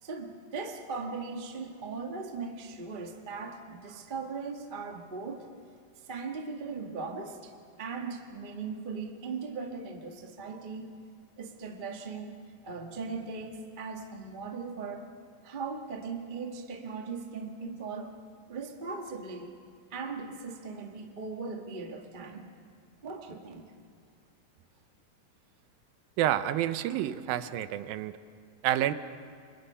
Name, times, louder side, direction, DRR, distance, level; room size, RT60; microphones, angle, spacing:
voice 1, 0.0-5.5 6.1-10.9 11.4-12.4 12.6-15.1 15.4-18.2 18.5-19.5 19.9-22.5 23.0-23.7, right 4 dB, 60° right, 3 dB, 0.5 m, -39 dB
voice 2, 26.2-28.1 28.6-28.9, right 12 dB, 90° right, 12 dB, 2.6 m, -28 dB
29.5 x 25.0 x 5.6 m, 2.2 s
omnidirectional pair, 4.0 m